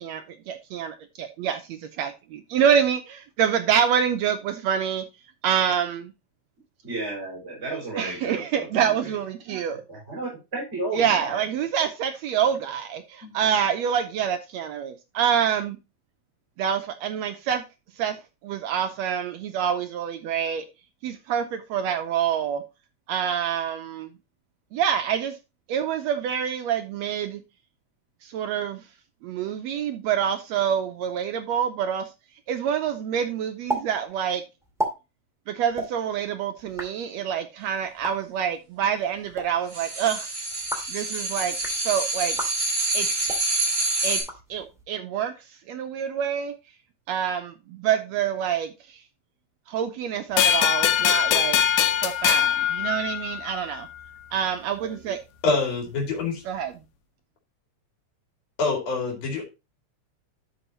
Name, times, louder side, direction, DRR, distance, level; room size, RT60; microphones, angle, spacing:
voice 1, 0.0-5.0 5.4-6.1 8.0-9.8 10.9-13.0 13.3-15.8 16.6-17.6 18.0-18.2 18.4-20.6 21.0-22.6 23.1-24.1 24.7-25.3 25.7-27.4 28.3-28.8 29.2-32.1 32.5-34.4 35.5-40.3 40.9-41.5 41.9-42.3 42.9-43.1 44.0-44.2 44.5-45.3 45.7-46.5 47.1-48.7 49.7-51.6 52.0-53.9 54.3-55.2 56.5-56.7, right 8 dB, 75° right, 1.8 m, -26 dB
voice 2, 6.8-9.2 9.7-11.4 13.2-13.4, right 2 dB, 20° right, 5.6 m, -33 dB
sound 1, 33.7-33.8 34.1-34.2 34.6-34.9 35.7-35.9 36.6-36.9 37.9-38.1 39.1-39.4 40.5-40.9 41.5-41.8 42.3-42.5 43.2-43.4 44.1-44.8, right 1 dB, ahead, 1.6 m, -32 dB
sound 2, 39.7-44.2, right 2 dB, 50° right, 6.4 m, -27 dB
sound 3, 50.4-53.6, left 10 dB, 85° left, 2.2 m, -22 dB
voice 3, 55.4-56.4 58.6-59.4, left 3 dB, 60° left, 3.6 m, -25 dB
12.5 x 5.7 x 2.9 m
omnidirectional pair, 3.4 m